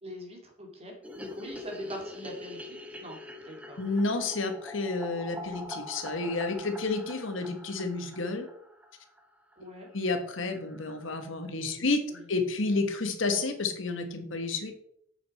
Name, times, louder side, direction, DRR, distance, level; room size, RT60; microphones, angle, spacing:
voice 1, 0.0-3.2 3.4-3.8 9.6-9.9 11.7-11.9 12.1-12.3, equal, 30° right, 1 dB, 2.4 m, -43 dB
sound 1, 1.0-9.3 9.5-9.6 9.9-10.0 10.2-10.3 10.5-11.1, left 1 dB, 5° right, 1.0 m, -44 dB
voice 2, 3.8-8.5 9.9-12.0 12.3-14.8, left 3 dB, 75° left, 6 dB, 1.5 m, -30 dB
8.6 x 6.9 x 4.3 m, 0.68 s
head